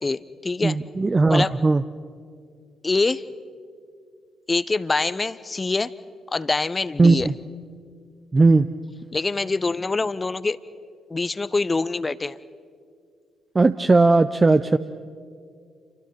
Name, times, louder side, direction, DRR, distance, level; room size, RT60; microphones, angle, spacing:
voice 1, 0.0-0.8 1.3-1.5 2.8-3.2 4.5-5.9 6.3-7.3 9.1-10.6 11.1-12.4, left 3 dB, 25° left, 17 dB, 0.7 m, -24 dB
voice 2, 0.6-1.8 7.0-7.3 8.3-8.7 13.5-14.8, right 3 dB, 25° right, 11 dB, 0.6 m, -17 dB
29.5 x 24.5 x 4.5 m, 2.1 s
figure-of-eight pair, 40°, 0 cm